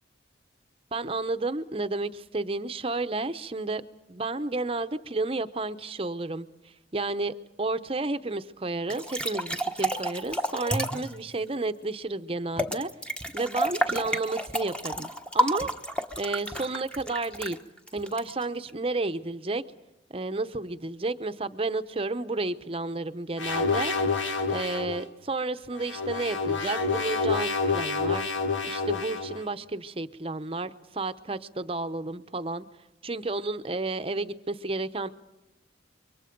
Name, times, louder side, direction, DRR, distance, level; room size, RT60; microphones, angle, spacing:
voice 1, 0.9-3.8 4.1-6.5 6.9-12.9 13.3-15.1 15.3-15.7 16.2-17.6 17.9-19.6 20.1-23.9 24.5-28.3 28.6-32.7 33.0-35.1, right 2 dB, 30° right, 11 dB, 0.8 m, -31 dB
sound 1, 8.9-11.1 12.6-18.7, right 1 dB, 5° left, 1.1 m, -30 dB
sound 2, 23.4-25.0 25.7-29.4, left 4 dB, 85° left, 1.9 m, -28 dB
26.5 x 23.5 x 5.2 m, 1.0 s
head